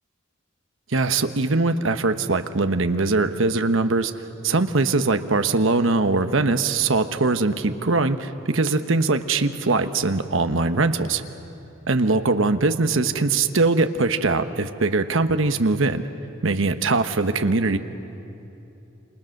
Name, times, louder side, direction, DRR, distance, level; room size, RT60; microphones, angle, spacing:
voice 1, 0.9-4.1 4.4-11.2 11.9-16.0 16.4-17.8, right 3 dB, 70° right, 9 dB, 1.1 m, -21 dB
28.0 x 27.0 x 6.6 m, 2.9 s
head